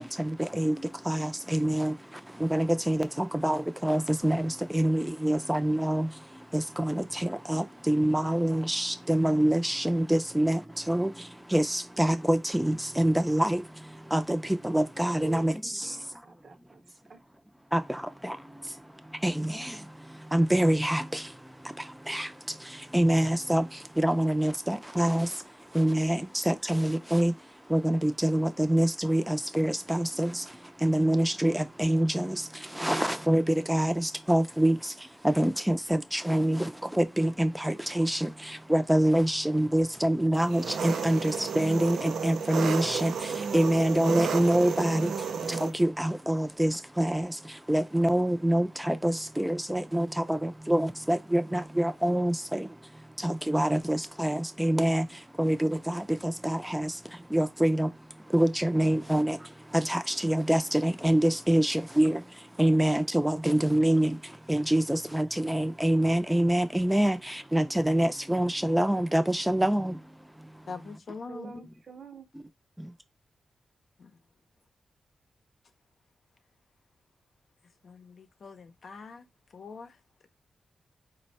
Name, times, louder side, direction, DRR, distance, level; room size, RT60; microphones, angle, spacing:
voice 1, 2.5-3.0 3.4-3.6 3.8-4.4 4.7-6.1 7.5-8.6 9.1-9.6 9.9-10.6 10.9-11.1 11.5-11.6 12.0-13.5 14.1-14.2 14.7-15.5 20.3-21.0 22.9-23.6 24.0-25.3 25.8-26.2 26.5-27.3 27.7-29.2 29.6-30.3 30.8-31.5 31.8-32.2 32.8-33.4 33.7-33.9 34.3-34.7 35.4-35.7 36.3-36.6 37.2-37.5 38.0-38.1 38.7-41.2 41.6-42.0 42.2-43.1 43.5-45.0 45.8-45.9 46.3-46.7 47.7-48.7 49.0-50.1 50.7-50.8 51.1-51.4 51.8-52.3 53.2-55.0 55.4-55.6 57.3-57.9 58.3-59.3 60.2-61.7 62.0-62.1 62.6-64.1 64.5-64.8 65.1-65.2 65.5-67.2 67.5-69.9, right 1 dB, 5° right, 0.5 m, -24 dB
voice 2, 15.8-16.8 17.1-17.2 71.3-72.3, right 4 dB, 60° right, 0.8 m, -45 dB
Engine, 40.4-45.7, right 6 dB, 85° right, 0.5 m, -32 dB
voice 3, 70.7-71.6 78.4-78.5 78.8-79.2 79.5-79.9, left 4 dB, 65° left, 0.6 m, -41 dB
4.2 x 2.2 x 4.1 m
cardioid pair, 65°, 0 cm